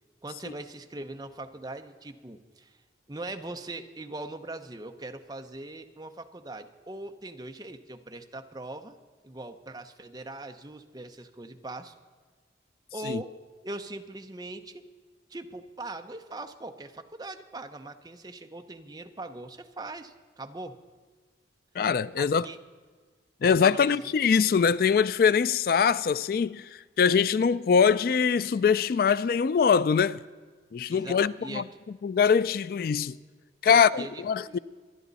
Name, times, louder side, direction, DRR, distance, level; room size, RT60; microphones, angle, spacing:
voice 1, 0.2-2.8 3.1-9.0 9.2-11.9 12.9-13.3 13.6-14.9 15.3-20.8 22.2-22.6 23.6-23.9 30.9-31.6 33.7-34.6, right 2 dB, 20° right, 0.8 m, -41 dB
voice 2, 21.8-22.5 23.4-26.7 27.0-30.2 30.7-31.6 32.0-33.2 33.6-34.6, left 6 dB, 55° left, 0.3 m, -23 dB
26.0 x 10.0 x 4.1 m
head